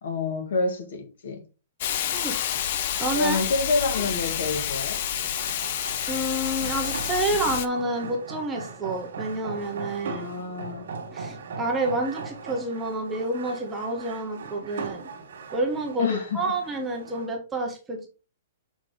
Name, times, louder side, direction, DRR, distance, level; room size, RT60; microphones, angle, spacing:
voice 1, 0.0-1.4 3.2-5.0 10.0-10.9 16.0-16.4, left 3 dB, 60° left, 2.0 m, -27 dB
Hiss, 1.8-7.7, left 10 dB, 40° left, 0.5 m, -29 dB
voice 2, 3.0-3.4 3.9-4.0 6.1-10.2 11.1-15.1 15.5-18.1, right 2 dB, 10° right, 0.9 m, -29 dB
sound 1, 3.6-17.3, right 5 dB, 65° right, 1.8 m, -40 dB
6.6 x 4.6 x 3.9 m
hypercardioid pair, 175°, 0 cm